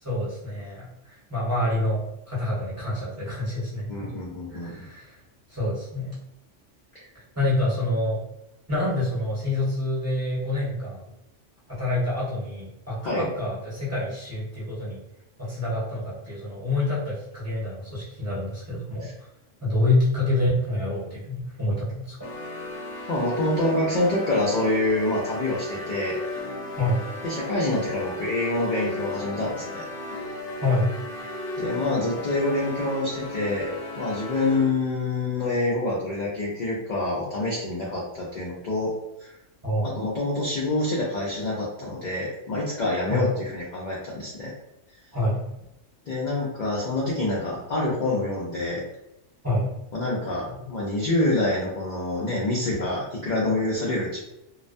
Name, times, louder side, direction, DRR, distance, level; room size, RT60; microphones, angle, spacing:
voice 1, 0.0-4.1 4.5-5.2 5.5-6.1 7.3-8.2 8.7-11.1 11.7-15.0 15.4-19.1 19.6-22.3 26.8-27.0 30.6-30.9 39.6-40.0 43.1-43.3 45.1-45.4 49.4-49.7, left 1 dB, 15° right, -10 dB, 0.9 m, -27 dB
voice 2, 3.9-4.8 6.9-7.0 13.0-13.3 19.0-19.1 23.1-26.2 27.2-29.8 31.6-33.7 34.0-38.9 39.2-39.3 39.8-44.5 46.1-48.8 49.9-54.2, left 2 dB, 55° left, -5 dB, 0.5 m, -26 dB
sound 1, 22.2-34.9, left 2 dB, 70° left, 0.9 m, -35 dB
2.3 x 2.1 x 2.5 m, 0.87 s
omnidirectional pair, 1.3 m